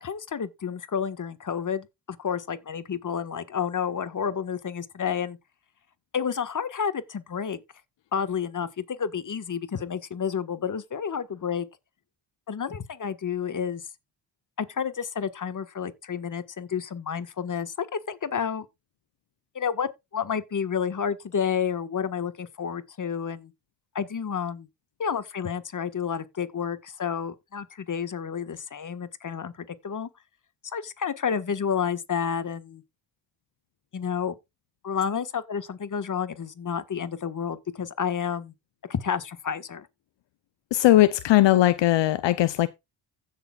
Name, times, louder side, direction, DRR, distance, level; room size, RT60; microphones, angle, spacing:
voice 1, 0.0-5.4 6.1-7.6 8.1-11.7 12.5-13.8 14.6-18.6 19.5-23.5 23.9-24.7 25.0-30.1 30.7-32.8 33.9-34.3 34.8-38.5 38.9-39.9, left 7 dB, 45° left, 1.5 m, -30 dB
voice 2, 40.7-42.7, left 14 dB, 80° left, 0.7 m, -19 dB
16.0 x 6.7 x 2.4 m
cardioid pair, 85°, 43 cm